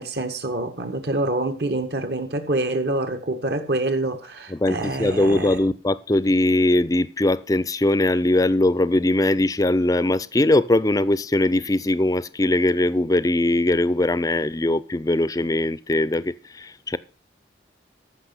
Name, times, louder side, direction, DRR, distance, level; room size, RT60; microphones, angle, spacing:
voice 1, 0.0-5.6, right 2 dB, 65° right, 1.6 m, -26 dB
voice 2, 4.5-17.0, left 1 dB, 20° left, 0.4 m, -21 dB
14.5 x 6.0 x 5.7 m
head